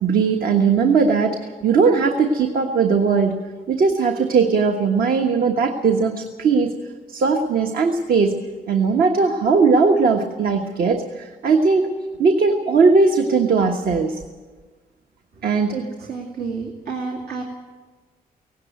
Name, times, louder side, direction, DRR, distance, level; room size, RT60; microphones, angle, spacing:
voice 1, 0.0-3.4 3.7-6.7 7.1-8.4 8.7-11.9 12.2-14.2 15.4-15.8, right 4 dB, 75° right, 3 dB, 1.4 m, -18 dB
voice 2, 16.1-17.4, right 5 dB, 90° right, -1 dB, 2.5 m, -29 dB
18.0 x 17.0 x 9.2 m, 1.4 s
wide cardioid pair, 150°, 16 cm